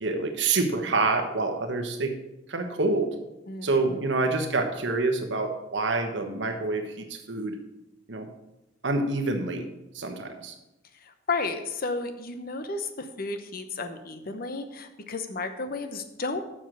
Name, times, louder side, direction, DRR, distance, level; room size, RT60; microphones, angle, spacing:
voice 1, 0.0-2.1 2.5-3.1 3.6-7.6 8.1-8.3 8.8-9.7 9.9-10.5, right 3 dB, 65° right, 5 dB, 1.2 m, -27 dB
voice 2, 10.9-16.4, left 3 dB, 50° left, 9 dB, 0.8 m, -33 dB
7.2 x 6.3 x 6.1 m, 0.94 s
head